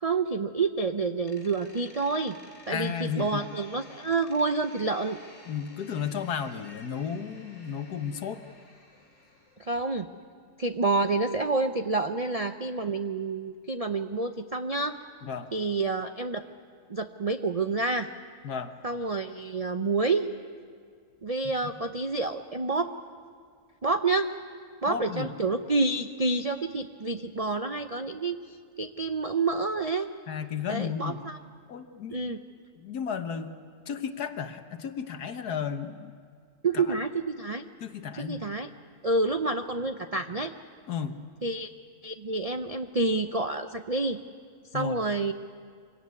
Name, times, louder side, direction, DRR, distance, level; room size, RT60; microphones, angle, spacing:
voice 1, 0.0-2.3 2.7-5.2 9.6-10.1 10.6-14.9 15.5-16.4 16.9-18.1 18.8-20.3 21.2-22.9 23.8-24.3 24.8-28.4 28.8-30.1 30.7-31.4 32.1-32.4 36.6-37.6 38.1-38.7 39.0-40.5 41.4-41.7 42.0-44.2 44.7-45.3, right 3 dB, 55° right, 7 dB, 0.4 m, -28 dB
Door, 1.3-9.8, left 2 dB, 50° left, 3.8 m, -53 dB
voice 2, 2.7-3.4 5.5-8.4 15.2-15.5 18.4-18.7 24.9-25.3 30.3-31.2 31.7-32.3 32.8-33.6 33.9-36.1 36.7-36.8 37.8-38.5 40.9-41.1 44.7-45.0, left 7 dB, 75° left, 8 dB, 1.7 m, -33 dB
24.5 x 17.5 x 9.6 m, 2.1 s
omnidirectional pair, 1.7 m